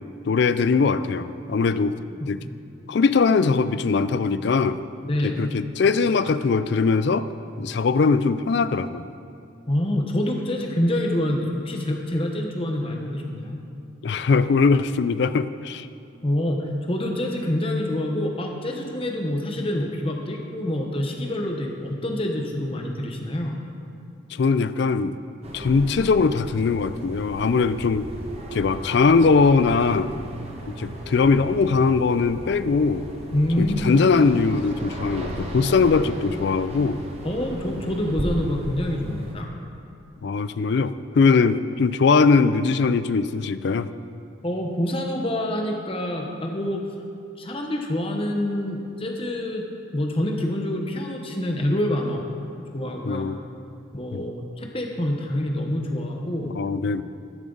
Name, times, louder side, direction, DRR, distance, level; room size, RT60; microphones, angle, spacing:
voice 1, 0.3-2.0 2.3-2.4 2.9-4.8 5.2-7.3 7.6-9.1 14.0-15.9 24.3-25.2 25.5-28.1 28.5-30.2 30.7-33.1 33.6-37.0 40.2-43.9 53.0-53.4 54.1-54.2 56.4-57.0, left 4 dB, 55° left, 13 dB, 0.4 m, -21 dB
voice 2, 5.0-5.4 9.7-13.6 16.2-23.6 33.3-34.0 37.2-39.5 44.4-46.8 47.4-49.6 49.9-52.2 52.7-53.2 53.9-56.5, left 1 dB, 25° left, 1 dB, 1.0 m, -26 dB
sound 1, 25.4-39.3, right 1 dB, 30° right, 1.1 m, -35 dB
11.5 x 11.0 x 3.9 m, 2.7 s
head